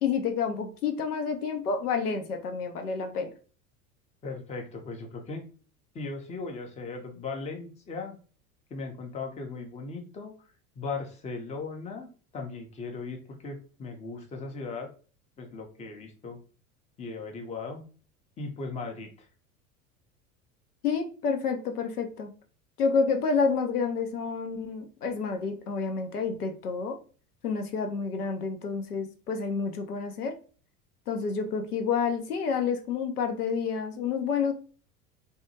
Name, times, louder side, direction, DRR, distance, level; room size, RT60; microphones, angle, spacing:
voice 1, 0.0-3.3 20.8-22.3 22.8-27.0 27.4-30.4 31.1-34.5, left 5 dB, 85° left, 5 dB, 0.6 m, -29 dB
voice 2, 4.2-5.5 5.9-8.1 8.7-10.5 10.8-12.1 12.3-14.9 15.4-16.4 17.0-17.8 18.4-19.3, left 4 dB, 15° left, 3 dB, 0.5 m, -38 dB
2.7 x 2.2 x 2.7 m, 0.39 s
figure-of-eight pair, 75°, 44 cm